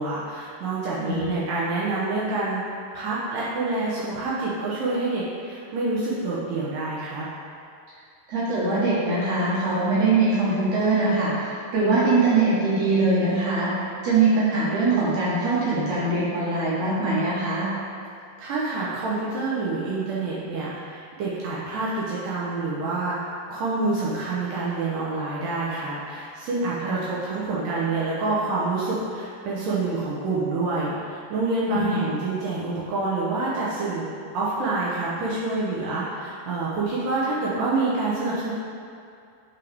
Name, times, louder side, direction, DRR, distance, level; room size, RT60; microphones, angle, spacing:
voice 1, 0.0-2.6 2.9-7.3 18.4-34.1 34.3-38.5, right 3 dB, 80° right, -7 dB, 1.9 m, -27 dB
voice 2, 1.0-1.4 8.3-13.7 14.0-17.7 26.8-26.9 31.7-32.0, right 3 dB, 60° right, -8 dB, 2.2 m, -22 dB
11.5 x 3.9 x 3.4 m, 2.5 s
omnidirectional pair, 5.1 m